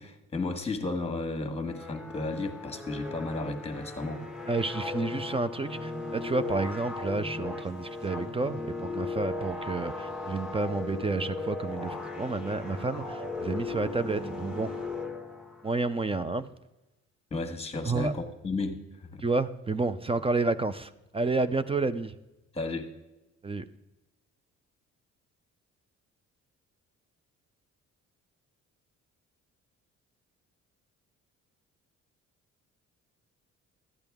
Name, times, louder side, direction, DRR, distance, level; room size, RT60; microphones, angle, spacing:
voice 1, 0.0-4.2 17.3-19.2 22.5-22.9, left 2 dB, 20° left, 1.4 m, -33 dB
sound 1, 1.7-15.8, left 3 dB, 5° right, 1.2 m, -37 dB
voice 2, 4.5-14.7 15.6-16.5 17.8-18.1 19.2-22.2 23.4-23.7, right 3 dB, 20° right, 0.4 m, -30 dB
12.5 x 8.8 x 3.5 m
cardioid pair, 90°, 30 cm